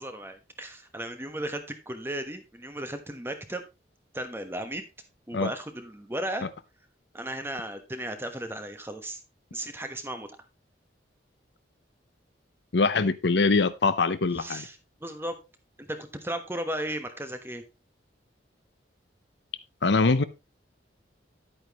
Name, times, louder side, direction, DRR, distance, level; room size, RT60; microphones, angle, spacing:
voice 1, 0.0-3.6 4.1-4.9 5.3-6.5 7.1-9.2 9.5-10.3 14.4-15.3 15.8-17.6, right 1 dB, 10° right, 1.2 m, -35 dB
voice 2, 12.7-14.6 19.8-20.2, left 3 dB, 75° left, 0.7 m, -23 dB
10.5 x 8.9 x 3.0 m
head